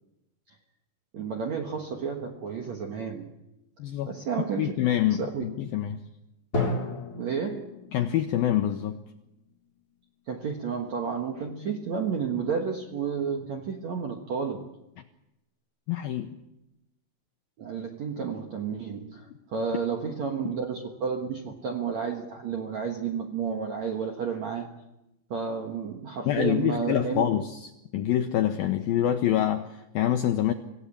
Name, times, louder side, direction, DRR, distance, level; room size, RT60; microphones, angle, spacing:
voice 1, 1.1-3.3 4.1-4.7 5.2-5.4 7.1-7.7 10.3-14.7 17.6-24.7 25.3-27.2, right 6 dB, 65° right, 3 dB, 1.8 m, -31 dB
voice 2, 3.8-4.1 4.6-6.0 7.9-9.0 15.9-16.3 26.3-30.5, left 11 dB, 80° left, 6 dB, 2.1 m, -26 dB
Drum, 6.5-10.2, left 2 dB, 25° left, 2.9 m, -34 dB
25.5 x 16.5 x 8.6 m, 0.92 s
omnidirectional pair, 5.4 m